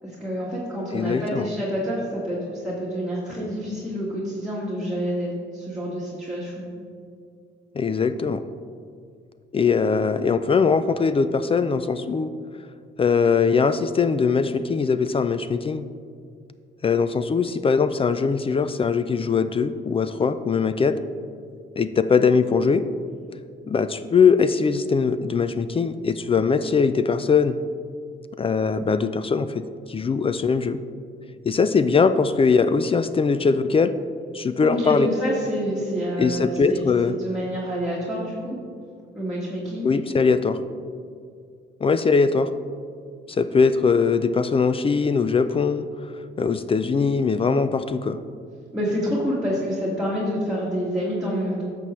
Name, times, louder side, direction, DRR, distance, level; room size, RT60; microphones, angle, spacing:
voice 1, 0.0-6.6 34.6-36.8 37.1-38.6 39.1-39.9 48.7-51.6, equal, ahead, -7 dB, 1.7 m, -27 dB
voice 2, 0.9-1.5 7.8-8.4 9.5-12.4 13.0-15.9 16.8-21.0 21.8-22.8 23.7-27.6 28.4-30.8 31.4-34.0 34.3-35.1 36.2-37.1 39.8-40.6 41.8-42.5 43.3-45.8 46.4-48.2, left 5 dB, 30° left, 12 dB, 0.4 m, -21 dB
11.0 x 7.0 x 3.2 m, 2.3 s
cardioid pair, 90°, 20 cm